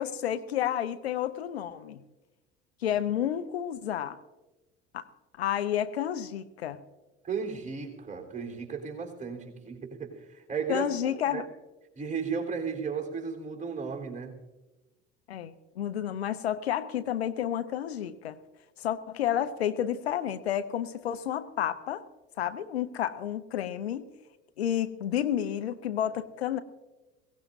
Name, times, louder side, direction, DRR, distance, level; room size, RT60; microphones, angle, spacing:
voice 1, 0.0-2.0 2.8-4.2 4.9-5.1 5.4-6.8 10.7-11.5 15.3-18.4 18.8-22.0 22.4-24.1 24.6-26.6, left 10 dB, 75° left, 12 dB, 0.7 m, -30 dB
voice 2, 7.2-11.4 12.0-14.3, right 5 dB, 25° right, 1 dB, 3.7 m, -35 dB
22.5 x 17.5 x 2.7 m, 1.1 s
figure-of-eight pair, 60°, 32 cm